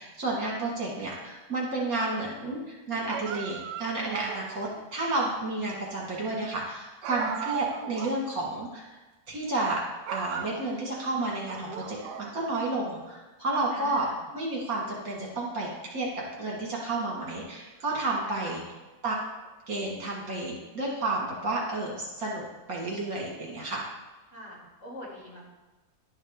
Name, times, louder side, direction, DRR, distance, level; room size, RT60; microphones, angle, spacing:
voice 1, 0.0-9.0 9.3-9.8 10.1-14.1 14.3-18.6 19.0-19.2 19.7-22.4 22.7-23.9, right 2 dB, 60° right, -3 dB, 2.2 m, -31 dB
sound 1, 3.1-4.9 7.0-8.2 8.5-8.6 9.5-9.7 10.1-11.1 11.5-12.7, right 9 dB, 80° right, 1.2 m, -37 dB
voice 2, 13.7-14.2 18.2-18.5 24.3-25.5, equal, 45° left, -9 dB, 3.7 m, -44 dB
11.0 x 5.7 x 3.5 m, 1.2 s
omnidirectional pair, 1.8 m